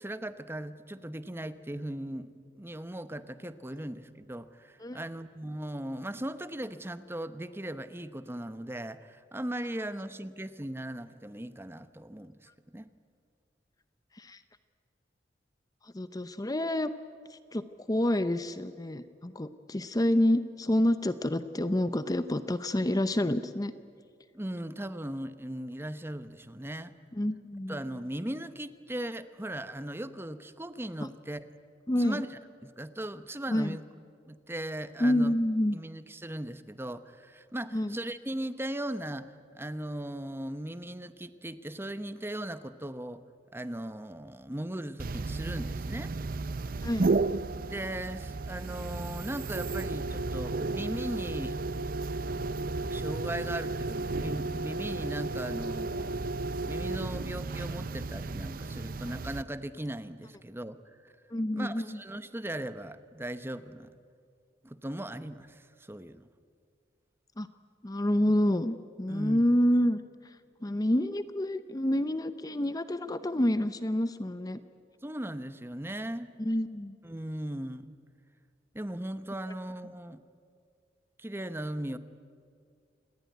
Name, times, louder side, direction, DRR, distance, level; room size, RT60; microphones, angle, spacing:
voice 1, 0.0-12.9 24.3-26.9 27.7-31.5 32.0-33.8 34.3-35.3 35.7-43.2 43.5-46.1 47.7-51.6 52.9-60.8 61.0-61.1 61.5-63.9 64.6-66.3 69.1-69.4 75.0-76.3 77.0-77.9 78.7-80.2 81.2-82.0, right 1 dB, 15° right, 12 dB, 0.9 m, -38 dB
voice 2, 15.9-16.9 17.3-23.7 27.2-27.8 31.9-32.2 33.5-33.8 35.0-35.8 37.7-38.0 46.8-47.1 61.3-61.8 67.4-67.5 67.8-70.0 70.6-74.6 76.4-77.0, left 1 dB, 20° left, 12 dB, 0.7 m, -28 dB
sound 1, 45.0-59.4, right 3 dB, 50° right, 0.6 m, -33 dB
28.5 x 19.5 x 9.4 m, 2.3 s
head